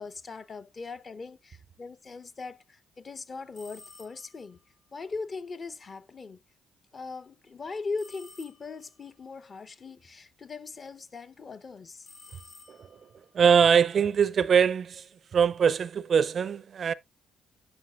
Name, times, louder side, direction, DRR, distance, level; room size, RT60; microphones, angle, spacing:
voice 1, 0.0-4.6 4.9-6.4 6.9-12.1, left 4 dB, 40° left, 0.8 m, -40 dB
sound 1, 3.5-4.4 8.0-9.0 12.0-13.2, left 3 dB, 65° left, 1.6 m, -52 dB
voice 2, 13.3-15.1 15.3-16.9, right 7 dB, 55° right, 0.4 m, -22 dB
11.5 x 6.0 x 2.4 m
hypercardioid pair, 45°, 0 cm